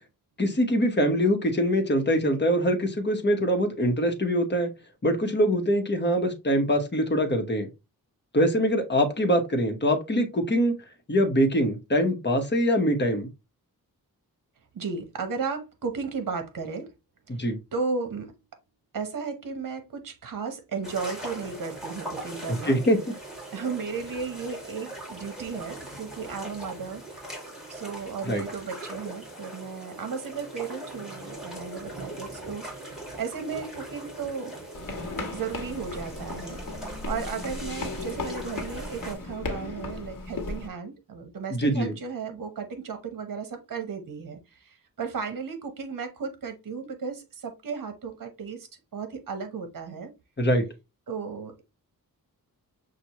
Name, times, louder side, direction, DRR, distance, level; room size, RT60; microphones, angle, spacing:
voice 1, 0.4-4.7 5.0-7.7 8.3-10.7 11.1-13.3 17.3-17.6 22.6-23.0 28.3-28.4 41.5-41.9 50.4-50.6, equal, 30° left, 1.1 m, -23 dB
voice 2, 14.7-16.9 17.3-17.4 17.7-18.3 18.9-22.8 23.5-27.0 27.7-34.6 35.1-36.6 37.1-50.1 51.1-51.6, right 5 dB, 65° right, 1.0 m, -35 dB
sound 1, 20.8-39.1, right 1 dB, ahead, 2.0 m, -41 dB
sound 2, 34.7-40.7, left 3 dB, 65° left, 1.2 m, -36 dB
6.1 x 2.4 x 2.9 m
wide cardioid pair, 105°, 36 cm